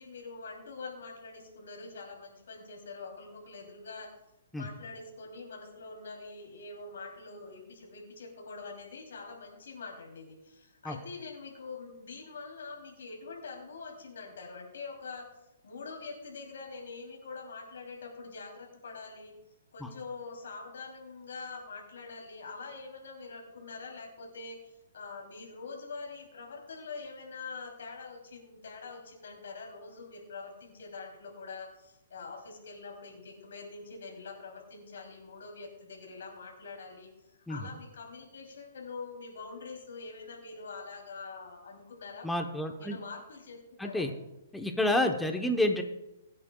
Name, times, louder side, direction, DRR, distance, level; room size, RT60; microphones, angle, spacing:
voice 1, 0.0-4.1 4.5-15.3 15.6-19.4 19.7-37.1 37.5-42.3 42.8-44.1, left 4 dB, 80° left, 0 dB, 3.0 m, -44 dB
voice 2, 42.2-43.0 43.8-44.1 44.5-45.8, left 1 dB, 5° left, 4 dB, 0.8 m, -29 dB
23.5 x 8.7 x 2.3 m, 0.96 s
hypercardioid pair, 160°, 0 cm